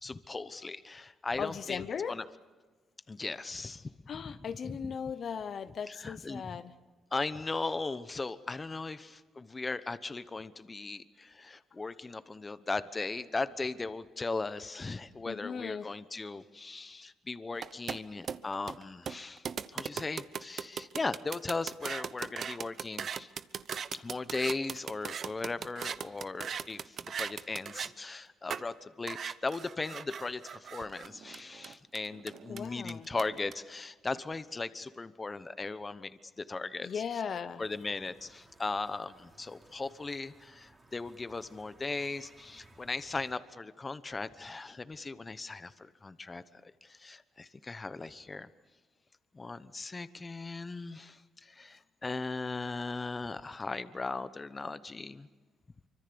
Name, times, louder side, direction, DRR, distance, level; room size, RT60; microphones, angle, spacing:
voice 1, 0.0-2.2 3.1-4.4 4.6-4.9 5.9-6.6 7.1-23.3 23.9-37.2 37.6-48.5 49.3-55.3, left 3 dB, 25° left, 13 dB, 1.0 m, -38 dB
voice 2, 1.4-2.2 4.1-6.7 15.3-15.9 32.5-33.1 36.8-37.6, left 7 dB, 55° left, 12 dB, 0.9 m, -37 dB
sound 1, 17.6-27.9 28.5-28.6 29.1-33.5, right 7 dB, 55° right, 0.8 m, -39 dB
sound 2, 37.6-43.3, right 2 dB, 25° right, 3.4 m, -60 dB
26.0 x 24.5 x 7.0 m, 1.3 s
cardioid pair, 90°, 0 cm